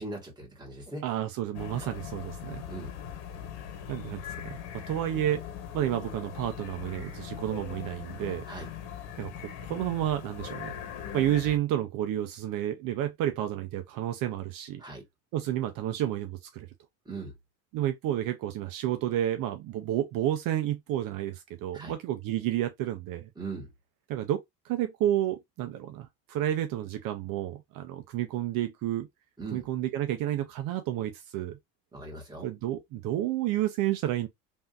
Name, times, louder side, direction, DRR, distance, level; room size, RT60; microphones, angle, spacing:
voice 1, 0.0-1.0 1.8-1.9 2.7-2.9 8.5-8.7 14.8-15.0 17.0-17.3 21.7-21.9 23.3-23.7 29.4-29.6 31.9-32.5, right 3 dB, 10° right, 1.6 m, -39 dB
voice 2, 1.0-2.6 3.9-4.6 4.9-5.4 5.7-8.5 9.2-9.3 9.7-10.7 11.1-14.8 15.3-16.7 17.7-23.3 24.1-29.1 29.5-31.6 32.4-34.3, right 12 dB, 60° right, 0.6 m, -30 dB
sound 1, 1.5-11.6, left 9 dB, 85° left, 1.2 m, -40 dB
3.5 x 2.7 x 2.4 m
supercardioid pair, 110°, 37 cm